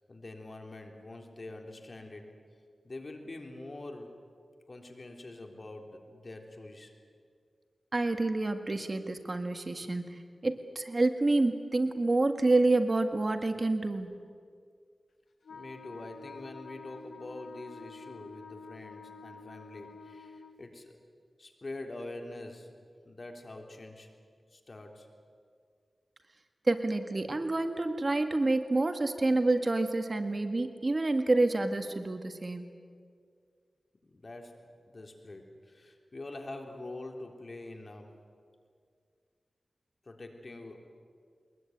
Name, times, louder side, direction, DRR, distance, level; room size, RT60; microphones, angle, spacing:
voice 1, 0.1-2.4 2.8-4.1 4.7-6.9 15.5-21.0 21.4-24.1 24.5-25.1 34.1-38.2 40.0-40.8, left 2 dB, 50° left, 3 dB, 3.6 m, -45 dB
voice 2, 7.9-14.1 26.7-32.7, right 2 dB, 40° right, 7 dB, 1.8 m, -28 dB
Wind instrument woodwind instrument, 15.4-20.6, left 4 dB, 80° left, 1.1 m, -49 dB
23.0 x 21.0 x 9.5 m, 2.1 s
wide cardioid pair, 60°, 0 cm